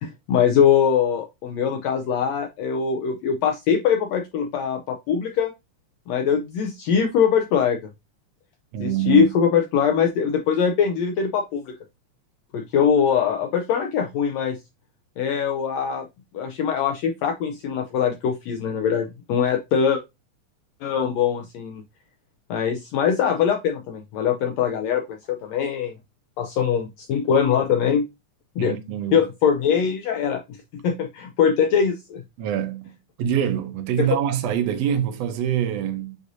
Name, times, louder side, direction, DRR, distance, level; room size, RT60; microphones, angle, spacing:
voice 1, 0.0-5.5 6.1-7.8 8.8-11.7 12.5-14.6 15.2-16.1 16.3-20.0 20.8-21.8 22.5-25.9 26.4-28.0 28.6-28.7 29.1-30.6 30.8-32.2 34.0-34.1, left 7 dB, 90° left, 1.5 m, -22 dB
voice 2, 8.7-9.3 28.6-29.2 32.4-36.2, right 10 dB, 70° right, 1.6 m, -25 dB
7.9 x 2.7 x 2.5 m
omnidirectional pair, 3.6 m